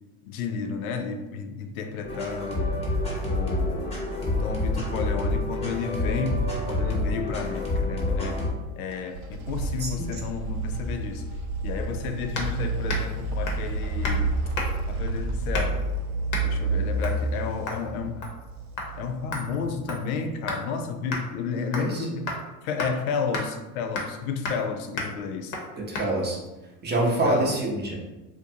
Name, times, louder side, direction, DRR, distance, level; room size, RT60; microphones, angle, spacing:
voice 1, 0.3-2.8 3.2-8.4 8.8-11.3 11.6-14.3 14.9-15.8 16.4-18.3 19.0-22.4 22.6-25.6 27.0-27.6, left 5 dB, 80° left, 0.5 m, -32 dB
sound 1, 2.0-8.5, left 1 dB, 15° left, 0.8 m, -27 dB
sound 2, 8.9-19.7, right 2 dB, 80° right, 0.5 m, -30 dB
voice 2, 9.8-10.2 21.8-22.1 25.8-26.4 26.8-28.0, right 2 dB, 25° right, 0.6 m, -26 dB
sound 3, 12.3-12.5 12.9-13.1 13.5-13.7 14.0-14.2 14.5-14.9 15.5-15.8 16.3-16.5 17.0-17.2 17.7-17.8 18.2-18.5 18.8-18.9 19.3-20.6 21.1-21.2 21.7-22.0 22.3-22.4 22.8-22.9 23.3-23.5 23.9-24.2 24.4-24.7 25.0-25.1 25.5-25.7 25.9-26.1, left 3 dB, 45° left, 0.7 m, -32 dB
2.5 x 2.2 x 2.7 m
hypercardioid pair, 95°, 43 cm